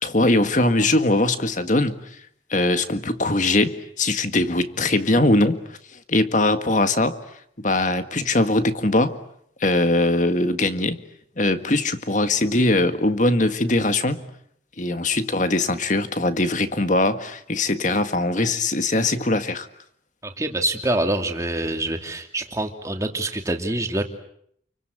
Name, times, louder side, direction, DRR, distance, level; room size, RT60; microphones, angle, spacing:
voice 1, 0.0-2.0 2.5-5.6 6.1-7.2 7.6-9.2 9.6-11.0 11.4-14.3 14.8-19.7, left 2 dB, 40° left, 9 dB, 1.7 m, -21 dB
voice 2, 20.2-24.0, right 1 dB, 15° right, 4 dB, 2.6 m, -25 dB
29.5 x 24.0 x 8.1 m, 0.70 s
head